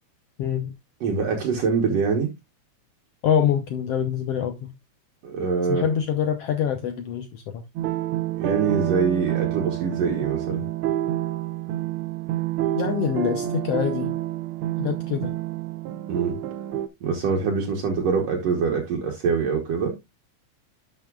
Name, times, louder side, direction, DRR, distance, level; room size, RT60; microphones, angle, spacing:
voice 1, 0.4-0.7 3.2-4.7 5.7-7.6 12.7-14.2 14.8-15.4, left 8 dB, 70° left, 1.6 m, -25 dB
voice 2, 1.0-2.3 5.2-5.9 8.4-10.6 16.1-16.4 17.0-20.0, right 5 dB, 65° right, 2.2 m, -24 dB
sound 1, 7.8-16.9, right 13 dB, 80° right, 1.2 m, -28 dB
11.5 x 5.7 x 2.3 m
omnidirectional pair, 3.4 m